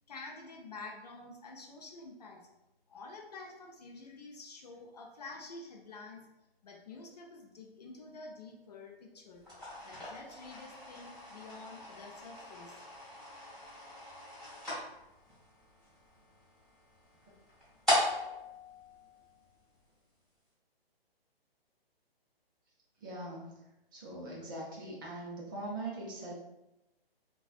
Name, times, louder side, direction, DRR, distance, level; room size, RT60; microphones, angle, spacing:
voice 1, 0.1-2.4 2.9-6.2 6.6-9.4 9.8-12.8, left 3 dB, 40° left, 1 dB, 0.5 m, -48 dB
sound 1, 9.4-19.8, left 1 dB, ahead, 1.4 m, -39 dB
voice 2, 23.0-23.4 23.9-26.3, right 2 dB, 20° right, -5 dB, 0.5 m, -41 dB
3.9 x 2.3 x 2.4 m, 0.94 s
figure-of-eight pair, 135°, 31 cm